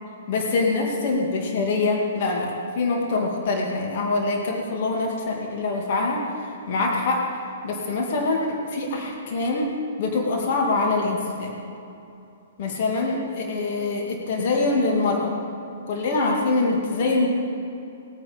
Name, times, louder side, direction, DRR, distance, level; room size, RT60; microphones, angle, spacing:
voice 1, 0.3-7.2 7.6-11.6 12.6-15.3 15.9-17.3, left 3 dB, 45° left, 0 dB, 2.3 m, -24 dB
19.5 x 8.9 x 5.2 m, 2.7 s
figure-of-eight pair, 115°, 0 cm